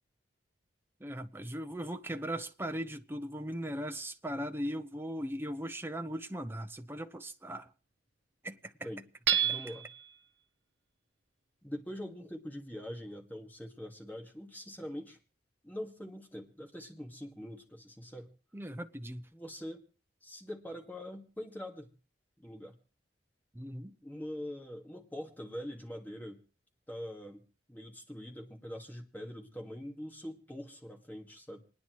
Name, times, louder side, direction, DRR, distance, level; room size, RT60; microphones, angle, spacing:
voice 1, 1.0-7.7 8.4-8.7 18.5-19.3 23.5-24.0, equal, 15° right, 0.7 m, -38 dB
Hammer / Chink clink, 9.3-10.1, right 10 dB, 85° right, 0.9 m, -29 dB
voice 2, 9.4-9.9 11.6-15.2 15.6-18.3 19.3-19.8 20.2-21.9 22.4-22.7 24.0-26.4 26.9-27.4 27.7-31.6, equal, 10° left, 1.9 m, -43 dB
28.0 x 9.9 x 3.1 m
head